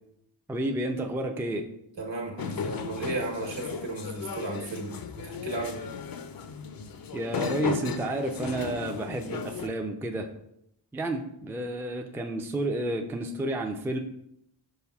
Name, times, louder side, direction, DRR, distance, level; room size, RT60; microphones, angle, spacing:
voice 1, 0.5-1.6 7.1-10.3 10.9-14.0, right 1 dB, 5° right, 3 dB, 0.4 m, -31 dB
voice 2, 2.0-4.9 5.2-5.8, right 2 dB, 65° right, 0 dB, 1.2 m, -34 dB
sound 1, 2.4-9.7, left 6 dB, 45° left, 0.5 m, -35 dB
5.5 x 4.1 x 2.3 m, 0.76 s
cardioid pair, 55°, 48 cm